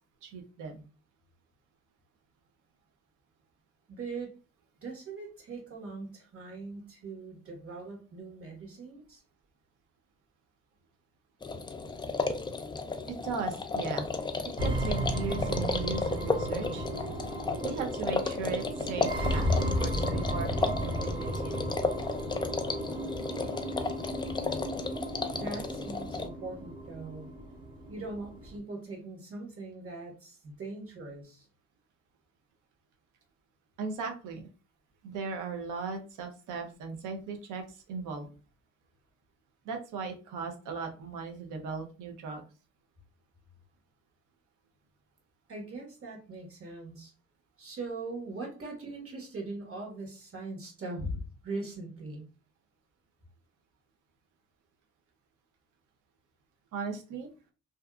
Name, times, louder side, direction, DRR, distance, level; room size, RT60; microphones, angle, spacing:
voice 1, 0.2-0.8 13.1-14.1 14.6-16.9 17.6-21.5 33.8-34.5 35.0-38.3 39.6-42.4 56.7-57.3, right 5 dB, 90° right, 4 dB, 0.7 m, -37 dB
voice 2, 3.9-4.3 4.8-9.2 25.3-27.3 27.9-31.5 45.5-47.1 47.6-52.2, right 2 dB, 45° right, 1 dB, 1.2 m, -41 dB
sound 1, 11.4-26.3, left 3 dB, 15° left, 0.3 m, -34 dB
sound 2, 14.6-28.6, equal, 15° right, 0.7 m, -34 dB
2.6 x 2.3 x 2.3 m, 0.35 s
cardioid pair, 90°, 30 cm